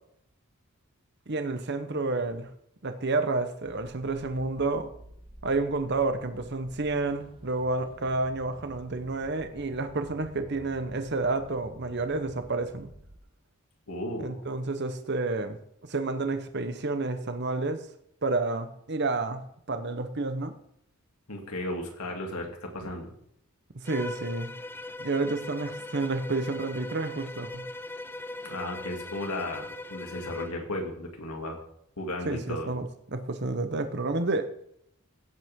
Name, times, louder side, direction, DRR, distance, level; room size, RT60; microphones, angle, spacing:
voice 1, 1.3-2.5 2.8-4.9 5.4-12.9 14.2-17.8 18.2-19.4 19.7-20.5 23.7-24.5 25.0-27.6 32.2-34.5, right 3 dB, 50° right, 9 dB, 1.0 m, -30 dB
sound 1, 3.6-13.2, right 1 dB, 25° right, 1.1 m, -51 dB
voice 2, 13.9-14.4 21.3-23.1 28.4-31.6 32.0-32.7, left 1 dB, 90° left, 2 dB, 2.7 m, -35 dB
Bowed string instrument, 23.8-30.6, left 2 dB, 10° left, 0.5 m, -40 dB
16.5 x 8.2 x 3.7 m, 0.71 s
head